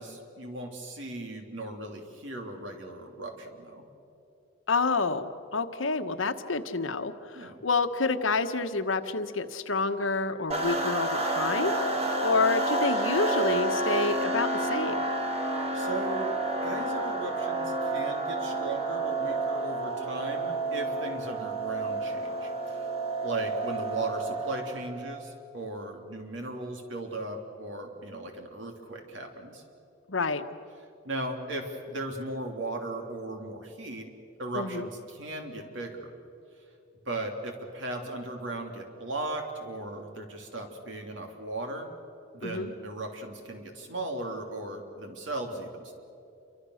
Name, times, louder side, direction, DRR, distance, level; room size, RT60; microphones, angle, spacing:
voice 1, 0.0-3.8 7.3-7.6 15.4-16.3 16.6-22.9 23.2-29.6 31.0-34.1 34.4-36.1 37.0-41.9 42.3-45.9, right 2 dB, 70° right, 3 dB, 3.2 m, -37 dB
voice 2, 4.7-15.0 30.1-30.4 34.5-34.9 42.4-42.7, left 3 dB, 80° left, 9 dB, 1.2 m, -28 dB
sound 1, 10.5-25.1, right 2 dB, 30° right, 2.4 m, -30 dB
29.0 x 24.5 x 6.5 m, 2.7 s
head